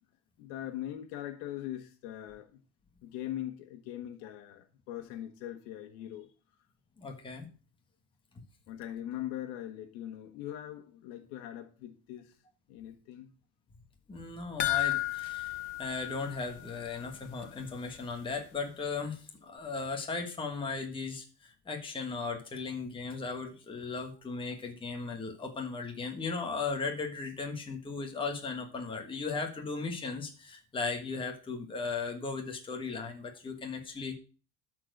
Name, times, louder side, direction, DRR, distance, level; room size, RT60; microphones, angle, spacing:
voice 1, 0.4-2.6 3.0-6.3 8.7-12.3 12.7-13.3, left 12 dB, 90° left, 1.6 m, -41 dB
voice 2, 7.0-7.5 14.1-34.2, left 4 dB, 10° left, 1.4 m, -37 dB
sound 1, 14.6-17.1 17.4-17.5 18.0-18.1, left 17 dB, 50° left, 0.5 m, -33 dB
13.0 x 4.5 x 6.5 m
cardioid pair, 170°, 40 cm